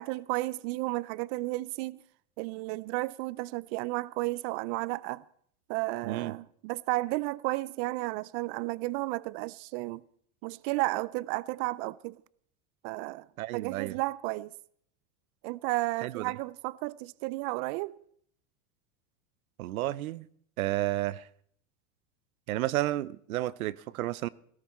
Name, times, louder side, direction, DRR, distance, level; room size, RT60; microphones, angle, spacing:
voice 1, 0.0-2.0 2.4-5.2 5.7-10.0 10.4-12.2 12.8-13.3 13.5-14.5 15.4-17.9, right 21 dB, 50° right, 0.5 m, -33 dB
voice 2, 13.4-14.0 16.0-16.2 19.6-20.3 20.6-21.3 22.5-24.3, right 15 dB, 85° right, 0.7 m, -31 dB
17.5 x 14.0 x 4.3 m
supercardioid pair, 120°, 41 cm